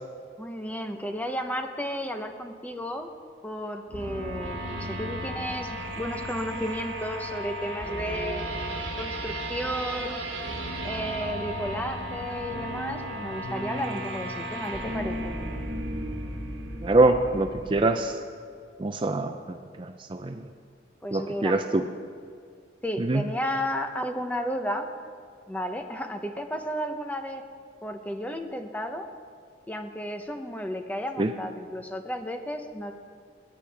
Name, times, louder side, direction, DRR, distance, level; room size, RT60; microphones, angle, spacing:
voice 1, 0.4-3.1 3.4-8.5 9.0-10.2 10.8-15.3 21.0-21.6 22.8-24.9 25.5-27.4 27.8-29.1 29.7-32.9, equal, 10° left, 6 dB, 0.7 m, -33 dB
sound 1, 3.9-17.9, right 1 dB, 75° right, 2.1 m, -34 dB
voice 2, 16.8-18.2 18.8-20.3 21.1-21.8 23.0-23.2 31.2-31.3, right 2 dB, 25° right, 7 dB, 0.4 m, -24 dB
21.5 x 9.7 x 3.4 m, 2.1 s
head